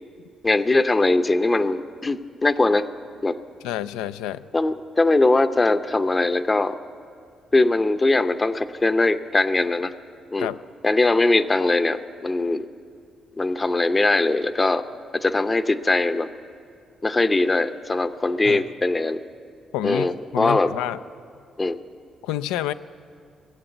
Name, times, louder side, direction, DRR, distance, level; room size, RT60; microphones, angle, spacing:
voice 1, 0.4-2.9 3.2-3.3 4.5-6.8 7.5-9.9 10.3-10.5 10.8-12.7 13.4-14.8 15.1-16.3 17.0-19.2 19.8-20.7 21.6-21.8, left 2 dB, 25° left, 11 dB, 0.6 m, -21 dB
voice 2, 3.6-4.5 10.4-10.6 18.4-18.6 19.7-21.0 22.2-22.7, left 12 dB, 85° left, 13 dB, 0.3 m, -28 dB
18.5 x 7.7 x 8.0 m, 2.2 s
supercardioid pair, 55°, 0 cm